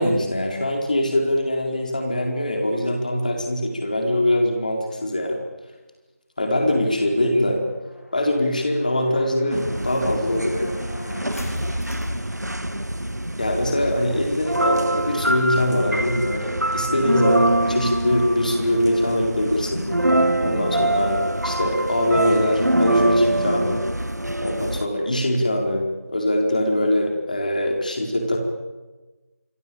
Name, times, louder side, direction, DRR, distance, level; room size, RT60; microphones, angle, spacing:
voice 1, 0.0-5.4 6.4-7.6 8.1-10.8 13.4-19.9 20.4-23.8 24.4-28.4, left 1 dB, 30° left, 2 dB, 4.7 m, -22 dB
sound 1, 6.6-13.2, left 1 dB, 65° left, 5.2 m, -38 dB
sound 2, 9.5-24.9, right 1 dB, 80° right, 1.8 m, -24 dB
26.5 x 24.5 x 8.9 m, 1.2 s
figure-of-eight pair, 170°, 9 cm